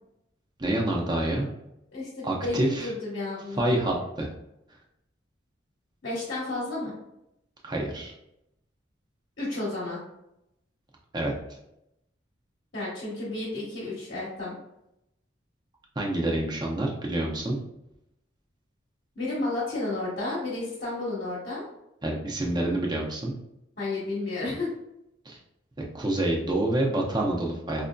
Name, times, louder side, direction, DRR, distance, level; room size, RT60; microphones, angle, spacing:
voice 1, 0.6-1.5 2.2-2.9 3.6-4.3 7.6-8.1 11.1-11.3 16.0-17.6 22.0-23.3 25.3-25.4 25.9-27.9, right 1 dB, 20° right, -1 dB, 0.5 m, -27 dB
voice 2, 1.9-3.6 6.0-6.9 9.4-10.0 12.7-14.6 19.1-21.6 23.8-24.7, left 2 dB, 55° left, -7 dB, 1.0 m, -32 dB
4.6 x 2.5 x 2.2 m, 0.84 s
head